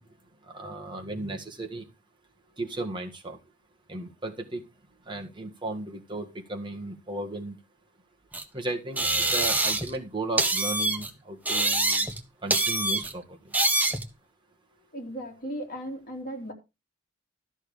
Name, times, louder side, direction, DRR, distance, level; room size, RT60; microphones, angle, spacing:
voice 1, 0.5-1.8 2.6-3.4 3.9-4.6 5.1-7.6 8.5-12.1 12.4-13.4, right 2 dB, 25° right, 1.8 m, -35 dB
sound 1, 8.3-8.4 9.0-10.0 10.4-11.1 11.5-12.2 12.5-13.1 13.5-14.1, right 2 dB, 10° right, 1.0 m, -25 dB
voice 2, 14.9-16.5, equal, 45° left, 3.0 m, -36 dB
13.0 x 6.5 x 4.9 m
head